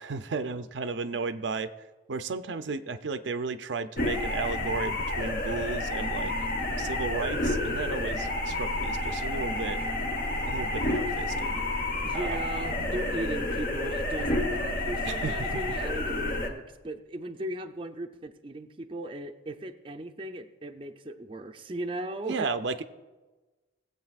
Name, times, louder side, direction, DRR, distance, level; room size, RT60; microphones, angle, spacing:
voice 1, 0.0-1.7 2.1-6.3 6.8-9.8 10.5-11.6 12.1-12.4 15.0-15.6 22.3-22.8, right 4 dB, 75° right, 10 dB, 0.5 m, -34 dB
sound 1, 4.0-16.5, left 1 dB, 50° left, 1.2 m, -30 dB
voice 2, 12.0-22.5, right 1 dB, 30° right, 5 dB, 0.5 m, -37 dB
18.5 x 8.2 x 2.4 m, 1.2 s
head